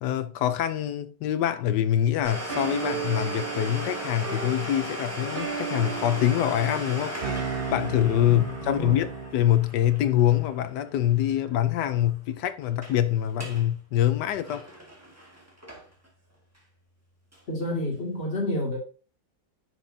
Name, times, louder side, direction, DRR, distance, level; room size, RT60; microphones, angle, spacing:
voice 1, 0.0-7.4 7.7-14.7, left 11 dB, 70° left, 1.2 m, -25 dB
Domestic sounds home sounds, 2.2-11.7 11.9-12.0 12.6-13.0 13.3-13.7 14.0-16.1 16.5-16.6 17.3-17.4, equal, 10° right, 1.8 m, -37 dB
sound 1, 2.5-9.5, right 6 dB, 40° right, 1.0 m, -35 dB
voice 2, 8.2-9.0 17.5-18.8, left 1 dB, 35° left, 2.5 m, -30 dB
9.9 x 5.9 x 2.7 m
omnidirectional pair, 2.0 m